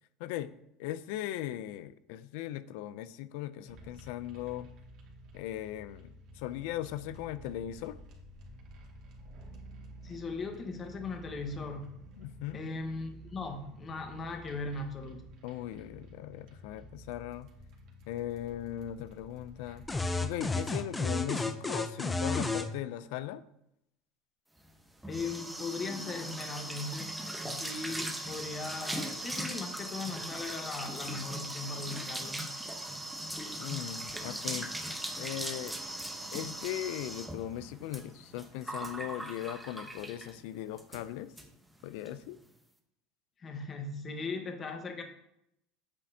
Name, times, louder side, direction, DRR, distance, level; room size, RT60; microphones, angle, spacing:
voice 1, 0.2-0.5 0.8-4.7 5.3-8.0 12.2-12.6 15.4-17.5 18.1-19.8 20.2-23.4 27.4-27.6 27.9-28.0 33.6-34.7 35.2-35.8 36.3-41.3 41.8-42.4, left 13 dB, 75° left, 15 dB, 0.4 m, -39 dB
sound 1, 3.7-20.6, equal, 60° right, 2.0 m, -52 dB
voice 2, 10.0-11.9 12.5-15.3 25.1-27.2 27.5-32.4 43.4-45.0, left 3 dB, 30° left, 5 dB, 1.2 m, -38 dB
sound 2, 19.9-22.7, left 3 dB, 10° left, 0.6 m, -31 dB
sound 3, 24.6-40.4 40.8-41.0 41.4-41.5 41.7-42.1, right 1 dB, 5° right, 0.9 m, -39 dB
8.5 x 7.6 x 2.8 m, 0.79 s
supercardioid pair, 125°, 0 cm